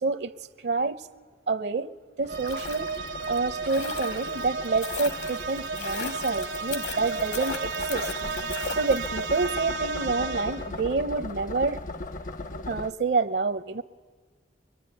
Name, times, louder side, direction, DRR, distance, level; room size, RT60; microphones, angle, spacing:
voice 1, 0.0-0.3 0.6-1.0 1.5-1.9 2.2-2.9 3.3-8.1 8.7-11.8 12.7-13.8, right 4 dB, 65° right, 0.7 m, -28 dB
sound 1, 2.2-9.4 9.7-9.8, left 5 dB, 70° left, 1.4 m, -38 dB
sound 2, 2.2-12.9, left 2 dB, 45° left, 0.7 m, -39 dB
sound 3, 2.3-10.8, right 5 dB, 85° right, 1.1 m, -34 dB
23.5 x 23.5 x 9.8 m
head